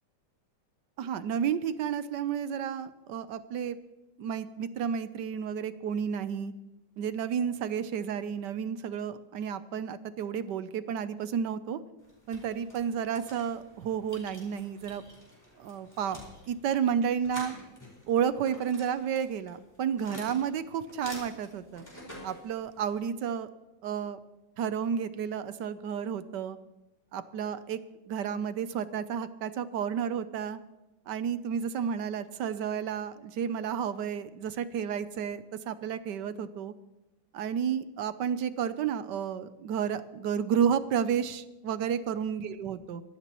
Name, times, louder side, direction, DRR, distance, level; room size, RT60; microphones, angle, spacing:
voice 1, 1.0-3.8 4.2-6.5 7.0-11.8 12.3-15.0 15.6-16.2 16.5-17.5 18.1-21.8 22.2-23.5 23.8-24.2 24.6-26.6 27.1-27.8 28.1-30.6 31.1-36.7 37.3-43.0, right 8 dB, 75° right, 13 dB, 1.3 m, -31 dB
sound 1, 12.0-23.1, equal, 10° left, 5.2 m, -49 dB
24.5 x 14.0 x 3.1 m, 0.98 s
omnidirectional pair, 2.0 m